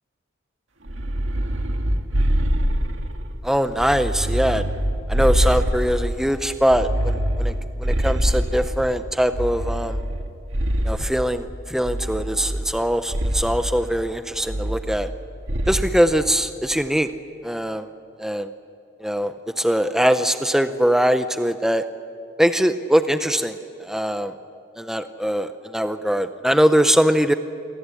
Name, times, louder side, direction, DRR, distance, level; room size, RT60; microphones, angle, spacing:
sound 1, 0.9-3.3 3.8-6.2 6.7-8.9 9.3-11.2 11.8-12.8 13.1-13.6 14.5-15.2 15.5-15.9, equal, 90° right, 2.0 m, -24 dB
voice 1, 3.4-4.6 5.1-7.5 7.8-10.0 10.8-15.1 15.7-17.1 17.4-17.9 18.2-18.5 19.0-21.8 22.4-24.3 24.8-27.3, equal, ahead, 9 dB, 0.6 m, -22 dB
28.5 x 22.5 x 8.4 m, 2.4 s
head